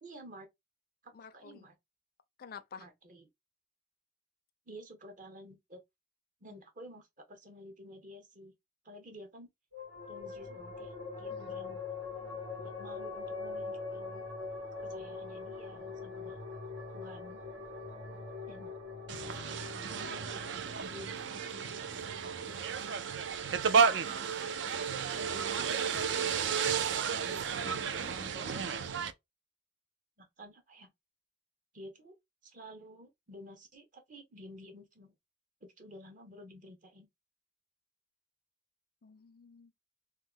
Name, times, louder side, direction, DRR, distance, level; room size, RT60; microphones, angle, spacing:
voice 1, 0.0-0.5 1.0-1.7 2.8-3.2 4.7-5.8 6.4-8.5 8.8-9.5 10.1-11.8 12.6-14.2 14.8-16.4 16.9-17.4 18.5-18.7 19.2-19.7 20.1-23.1 23.9-24.6 25.1-27.0 27.2-29.0 30.2-30.9 31.7-32.1 32.4-35.1 35.6-37.1, equal, 45° right, 0.8 m, -52 dB
voice 2, 1.1-1.7 2.4-2.9 6.5-6.6 11.3-11.5 27.6-28.2 39.0-39.7, left 6 dB, 50° left, 0.4 m, -50 dB
sound 1, 9.7-22.6, left 4 dB, 85° right, 1.5 m, -43 dB
sound 2, 19.1-29.1, right 6 dB, 65° right, 0.4 m, -32 dB
3.1 x 2.1 x 3.5 m
head